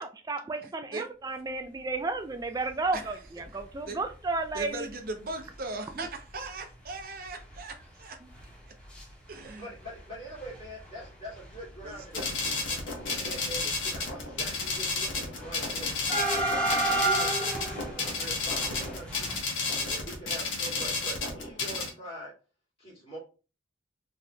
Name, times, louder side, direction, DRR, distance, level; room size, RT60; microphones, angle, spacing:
voice 1, 0.0-4.9 6.0-6.1, right 3 dB, 20° right, 0.3 m, -33 dB
voice 2, 0.6-1.1 2.9-3.1 3.8-4.0 4.5-8.2 8.7-8.8 9.3-9.7 11.8-12.4 13.6-13.7, right 3 dB, 50° right, 0.7 m, -39 dB
sound 1, 3.4-3.6 4.1-4.2 4.4-4.6 5.3-5.4 5.9-6.1 6.3-6.4 6.8-9.0 9.3-10.0 10.3-19.4, right 2 dB, 5° left, 1.4 m, -33 dB
voice 3, 9.6-12.8 13.2-16.0 16.4-19.3 19.9-22.3 22.8-23.2, right 1 dB, 30° left, 2.1 m, -43 dB
sound 2, 12.1-21.9, left 3 dB, 75° left, 1.2 m, -32 dB
4.1 x 3.2 x 2.3 m
head